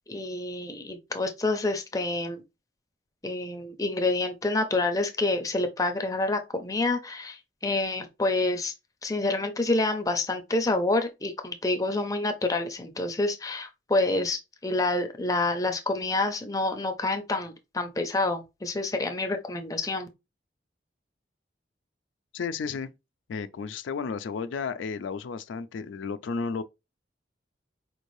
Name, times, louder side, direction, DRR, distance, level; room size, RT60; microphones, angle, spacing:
voice 1, 0.1-2.4 3.2-8.7 9.0-20.1, left 2 dB, 20° left, 0.5 m, -28 dB
voice 2, 22.3-22.9 23.3-26.6, left 5 dB, 85° left, 0.4 m, -33 dB
4.4 x 3.1 x 2.6 m
head